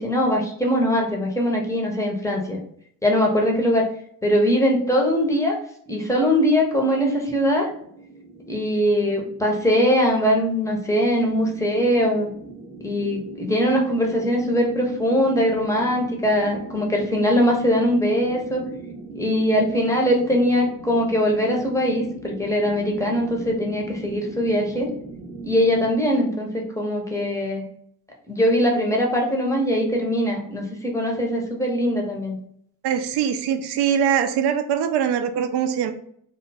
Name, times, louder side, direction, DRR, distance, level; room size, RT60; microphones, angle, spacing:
voice 1, 0.0-2.6 3.0-3.8 4.2-5.6 5.9-7.7 8.5-12.3 12.8-18.6 19.1-24.9 25.4-27.7 28.3-32.4, equal, 5° left, 0 dB, 0.7 m, -21 dB
sound 1, 6.8-25.9, right 3 dB, 25° right, 1.0 m, -40 dB
voice 2, 32.8-35.9, right 8 dB, 55° right, 8 dB, 0.5 m, -22 dB
2.3 x 2.0 x 3.3 m, 0.66 s
hypercardioid pair, 55°, 47 cm